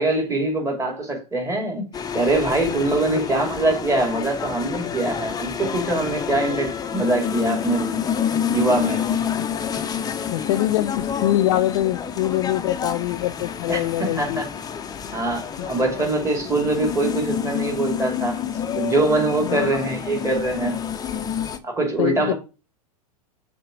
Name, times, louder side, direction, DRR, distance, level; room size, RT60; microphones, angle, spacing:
voice 1, 0.0-8.0 8.5-9.0 13.7-14.5 15.1-18.4 18.8-20.8 21.6-22.3, right 2 dB, 15° right, 2.6 m, -23 dB
sound 1, 1.9-21.6, left 8 dB, 20° left, 0.7 m, -28 dB
voice 2, 10.3-14.5 15.6-15.7 19.4-19.8 22.0-22.3, left 14 dB, 55° left, 0.5 m, -24 dB
5.7 x 3.8 x 4.9 m
figure-of-eight pair, 95°, 20 cm